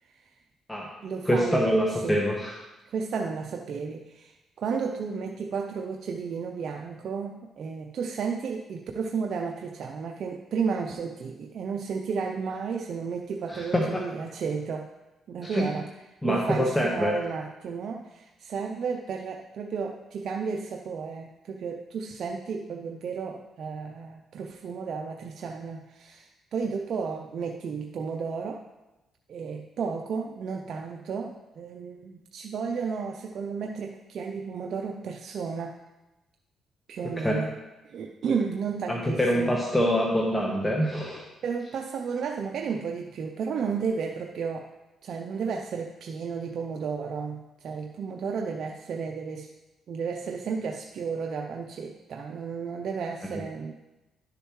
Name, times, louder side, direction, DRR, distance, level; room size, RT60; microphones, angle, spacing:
voice 1, 0.0-0.4 1.0-2.2 2.9-14.9 15.3-15.9 16.2-28.7 29.3-35.8 36.9-37.5 37.8-39.6 41.4-44.7 45.0-49.5 49.9-53.7, right 5 dB, 60° right, 3 dB, 0.5 m, -33 dB
voice 2, 1.2-2.6 13.5-13.8 15.4-15.6 16.2-17.2 37.2-37.3 38.9-41.2, equal, 10° left, -2 dB, 1.2 m, -25 dB
11.0 x 6.7 x 3.2 m, 1.0 s
cardioid pair, 90°, 0 cm